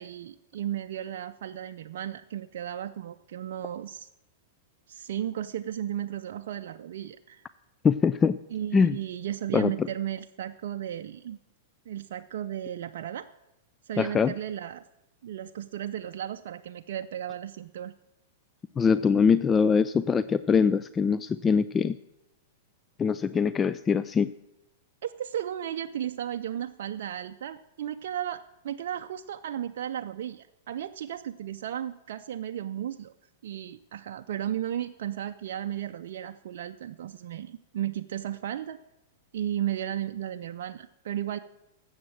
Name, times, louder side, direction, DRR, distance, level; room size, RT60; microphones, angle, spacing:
voice 1, 0.0-4.1 4.9-7.5 8.5-11.4 11.9-13.3 13.8-14.8 15.2-17.9 25.0-33.1 33.4-38.8 39.3-41.4, right 11 dB, 65° right, 7 dB, 0.4 m, -34 dB
voice 2, 7.8-8.4 8.7-9.0 9.5-9.7 14.0-14.3 18.8-22.0 23.0-24.3, left 6 dB, 20° left, 14 dB, 0.3 m, -23 dB
13.0 x 7.9 x 7.4 m, 0.93 s
hypercardioid pair, 110°, 0 cm